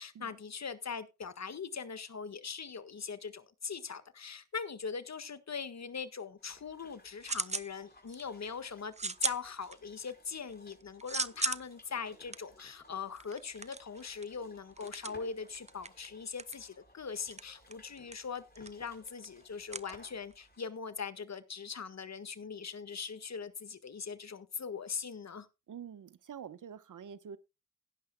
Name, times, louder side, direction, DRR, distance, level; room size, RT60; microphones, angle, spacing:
voice 1, 0.0-25.5, left 6 dB, 55° left, 1.6 m, -41 dB
sound 1, 6.4-20.7, left 1 dB, 30° left, 5.2 m, -61 dB
sound 2, 6.5-7.7 8.1-8.5 8.9-10.1 10.5-20.5, right 3 dB, 20° right, 0.7 m, -39 dB
voice 2, 25.7-27.4, right 8 dB, 70° right, 1.1 m, -47 dB
16.5 x 10.5 x 2.3 m
cardioid pair, 50°, 32 cm